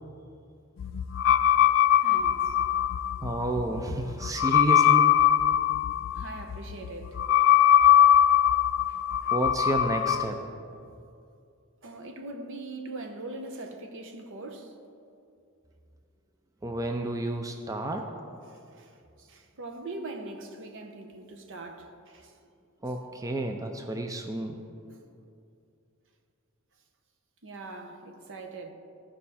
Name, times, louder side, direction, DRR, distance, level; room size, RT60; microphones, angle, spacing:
sound 1, 0.8-10.3, left 10 dB, 60° left, 0.3 m, -22 dB
voice 1, 2.0-2.6 6.1-7.2 8.9-9.3 11.8-14.7 18.5-22.3 24.9-25.0 27.4-28.7, right 2 dB, 60° right, 0.8 m, -42 dB
voice 2, 3.2-5.1 9.3-10.4 16.6-18.1 22.8-24.6, right 1 dB, 15° right, 0.4 m, -31 dB
14.5 x 5.1 x 4.2 m
head